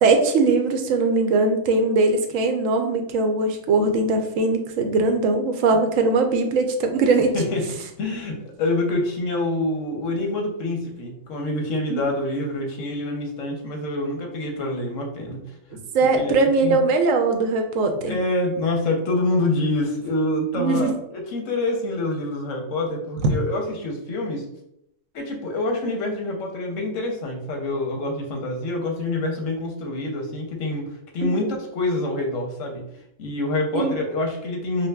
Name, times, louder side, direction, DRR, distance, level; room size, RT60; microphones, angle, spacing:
voice 1, 0.0-7.3 11.9-12.0 15.9-18.2 20.6-20.9 33.7-34.0, right 3 dB, 90° right, 5 dB, 1.0 m, -20 dB
voice 2, 7.3-7.6 8.0-15.4 16.1-16.8 18.0-24.5 25.1-32.8 33.2-34.9, left 2 dB, 80° left, 2 dB, 1.1 m, -26 dB
5.1 x 2.1 x 2.2 m, 0.78 s
omnidirectional pair, 1.3 m